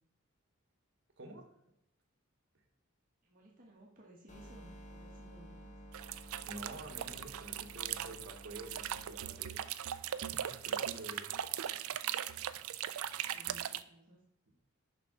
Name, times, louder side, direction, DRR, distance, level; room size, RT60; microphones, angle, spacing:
voice 1, 1.2-1.5 6.5-10.0 10.3-11.3, right 1 dB, 55° right, 3 dB, 1.2 m, -49 dB
voice 2, 3.2-5.7 11.2-11.5 13.3-14.2, right 1 dB, 40° right, -3 dB, 1.2 m, -58 dB
sound 1, 4.3-9.3, equal, 35° left, 0.9 m, -53 dB
sound 2, 5.9-13.8, right 10 dB, 80° right, 0.4 m, -39 dB
6.7 x 5.6 x 3.7 m, 0.82 s
head